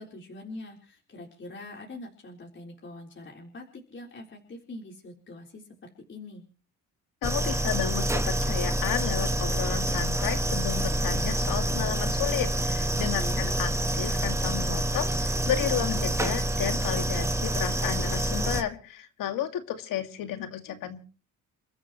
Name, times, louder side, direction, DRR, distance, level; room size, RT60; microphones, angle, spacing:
voice 1, 0.0-6.4 13.1-13.5, left 2 dB, 35° left, -1 dB, 4.0 m, -43 dB
voice 2, 7.2-13.7 14.0-21.0, left 10 dB, 90° left, 7 dB, 2.2 m, -32 dB
sound 1, 7.2-18.6, right 1 dB, 10° right, 1.1 m, -27 dB
29.5 x 13.0 x 3.1 m, 0.39 s
cardioid pair, 105°, 32 cm